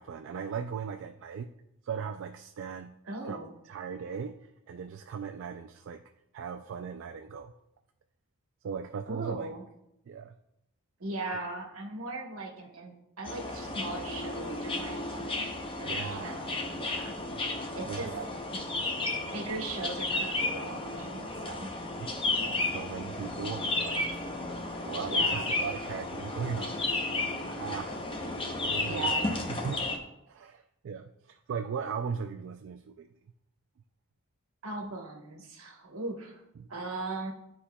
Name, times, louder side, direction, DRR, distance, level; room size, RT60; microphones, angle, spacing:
voice 1, 0.0-1.5 1.8-2.9 3.3-3.4 3.6-6.0 6.3-7.5 8.6-9.5 10.1-10.3 15.8-16.4 17.3-17.5 17.9-18.3 21.9-22.1 22.5-24.2 24.8-28.0 28.6-29.1 29.5-29.9 30.3-33.1 36.6-36.7, right 6 dB, 60° right, 5 dB, 0.3 m, -38 dB
voice 2, 3.0-3.5 9.1-9.6 11.0-15.5 15.8-17.1 17.7-18.1 19.3-21.7 22.3-22.6 25.1-25.5 28.8-29.8 34.6-36.4 36.7-37.3, right 3 dB, 80° right, 1 dB, 1.2 m, -39 dB
sound 1, 13.2-30.0, left 2 dB, 25° left, 0.7 m, -33 dB
11.5 x 4.2 x 2.3 m, 0.82 s
head